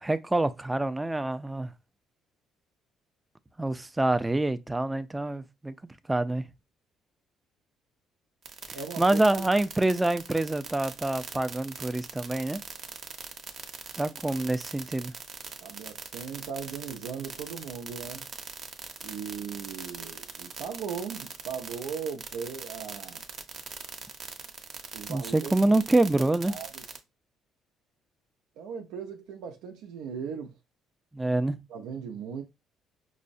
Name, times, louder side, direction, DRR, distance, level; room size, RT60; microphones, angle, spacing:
voice 1, 0.0-1.7 3.6-5.7 6.1-6.4 9.0-12.6 14.0-15.1 25.1-26.6 31.1-31.6, right 2 dB, 10° right, 0.3 m, -26 dB
sound 1, 8.4-27.0, right 5 dB, 45° right, 0.7 m, -41 dB
voice 2, 8.7-9.2 15.6-18.3 19.0-23.2 24.9-25.8 26.5-26.8 28.6-30.5 31.7-32.4, right 6 dB, 90° right, 0.5 m, -38 dB
5.4 x 2.0 x 2.5 m
cardioid pair, 115°, 0 cm